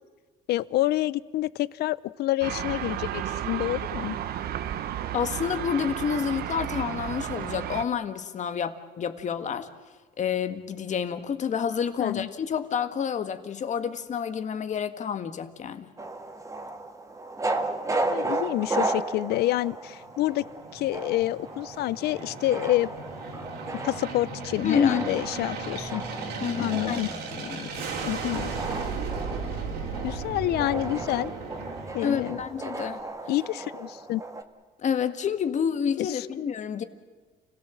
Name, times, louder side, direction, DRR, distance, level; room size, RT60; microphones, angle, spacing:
voice 1, 0.5-4.2 12.0-12.3 18.1-20.4 20.7-22.9 23.8-26.0 26.6-27.1 28.0-28.5 30.0-31.3 31.9-32.4 33.3-34.2 36.0-36.3, left 15 dB, 75° left, 0.7 m, -28 dB
sound 1, 2.4-7.8, right 11 dB, 65° right, 1.2 m, -33 dB
voice 2, 5.1-9.7 10.2-15.9 24.6-25.1 26.4-27.9 32.0-33.0 34.8-36.8, left 7 dB, 45° left, 1.8 m, -29 dB
sound 2, 16.0-34.4, right 2 dB, 20° right, 1.9 m, -35 dB
Aircraft, 20.0-32.7, right 4 dB, 80° right, 4.5 m, -36 dB
29.0 x 17.5 x 7.5 m
cardioid pair, 110°, 17 cm